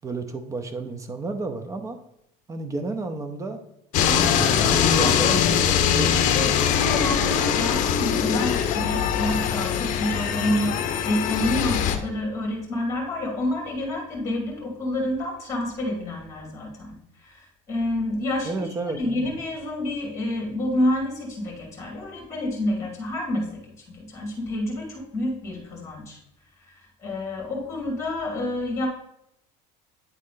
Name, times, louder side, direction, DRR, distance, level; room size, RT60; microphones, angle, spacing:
voice 1, 0.0-2.0 2.5-3.6 4.1-6.4 18.4-19.4, right 2 dB, 20° right, 8 dB, 0.6 m, -32 dB
sound 1, 3.9-12.0, left 8 dB, 50° left, 0.7 m, -22 dB
voice 2, 4.0-5.4 6.3-26.2 26.7-28.9, left 1 dB, 15° left, -1 dB, 2.2 m, -29 dB
9.1 x 3.7 x 3.7 m, 0.79 s
cardioid pair, 140°, 17 cm